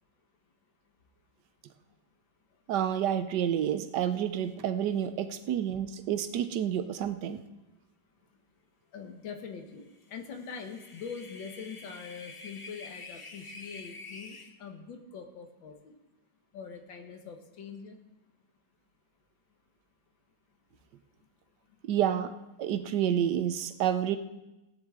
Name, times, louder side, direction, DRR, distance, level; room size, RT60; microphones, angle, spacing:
voice 1, 2.7-7.4 21.9-24.2, right 10 dB, 70° right, 10 dB, 1.2 m, -29 dB
voice 2, 8.9-16.0 16.5-18.0, left 6 dB, 75° left, 5 dB, 1.9 m, -43 dB
sound 1, 10.2-14.5, left 3 dB, 50° left, 0.3 m, -47 dB
17.0 x 10.5 x 3.7 m, 1.0 s
omnidirectional pair, 2.1 m